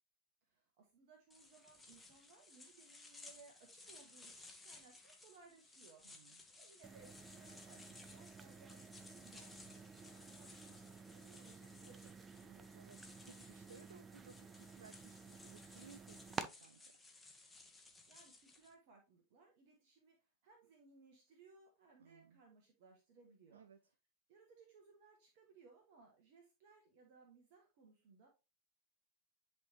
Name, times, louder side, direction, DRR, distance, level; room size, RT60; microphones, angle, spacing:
voice 1, 0.4-12.3 17.7-23.6 24.3-28.3, right 4 dB, 45° right, 1 dB, 1.4 m, -65 dB
sound 1, 1.3-18.7, left 3 dB, 10° left, 1.2 m, -60 dB
voice 2, 6.0-6.4 12.4-16.9 22.0-22.4 23.5-23.8, right 6 dB, 65° right, 13 dB, 0.4 m, -62 dB
sound 2, 6.8-16.5, right 5 dB, 20° right, 0.6 m, -52 dB
10.5 x 3.5 x 2.9 m, 0.28 s
figure-of-eight pair, 90°, 0 cm